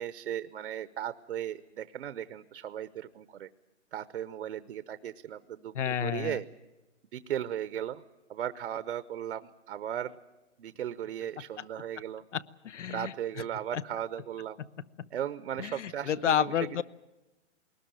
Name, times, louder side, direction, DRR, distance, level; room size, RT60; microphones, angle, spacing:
voice 1, 0.0-3.5 3.9-6.4 7.1-8.0 8.3-10.2 10.6-12.2 12.9-14.6 15.1-16.5, right 10 dB, 60° right, 14 dB, 0.9 m, -36 dB
voice 2, 5.7-6.4 11.6-11.7 12.3-13.1 13.7-13.8 15.6-16.8, left 9 dB, 75° left, 20 dB, 0.9 m, -30 dB
21.0 x 19.5 x 8.9 m, 1.1 s
hypercardioid pair, 160°, 37 cm